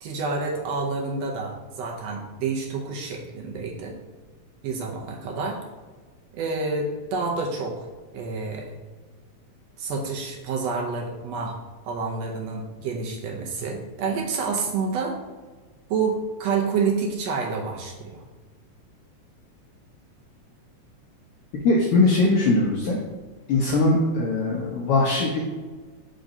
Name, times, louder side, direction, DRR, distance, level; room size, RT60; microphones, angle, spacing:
voice 1, 0.0-3.9 4.6-5.6 6.3-7.9 8.1-8.7 9.8-11.6 11.8-15.2 15.9-18.2, right 4 dB, 75° right, 0 dB, 1.7 m, -28 dB
voice 2, 21.6-23.0 23.5-25.4, left 2 dB, 75° left, -2 dB, 1.3 m, -21 dB
4.6 x 3.9 x 5.3 m, 1.4 s
omnidirectional pair, 3.4 m